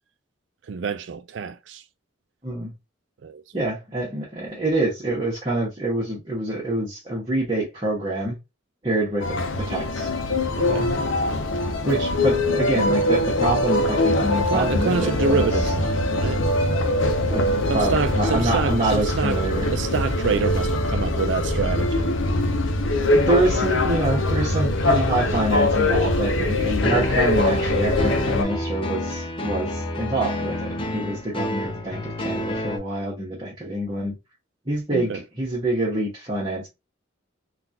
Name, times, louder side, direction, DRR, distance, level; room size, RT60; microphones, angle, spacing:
voice 1, 0.7-1.8 3.2-3.7 10.6-10.9 14.5-16.4 17.7-19.4 19.7-22.1 34.9-35.2, right 5 dB, 65° right, 0.4 m, -27 dB
voice 2, 3.5-8.3 8.8-10.1 10.6-10.9 11.8-15.5 17.3-19.7 23.0-34.1 34.7-36.7, right 1 dB, 25° right, 1.2 m, -26 dB
sound 1, 9.2-28.4, left 1 dB, 75° left, 0.6 m, -22 dB
sound 2, 26.8-32.8, equal, 25° left, 0.6 m, -28 dB
3.8 x 2.4 x 2.7 m
head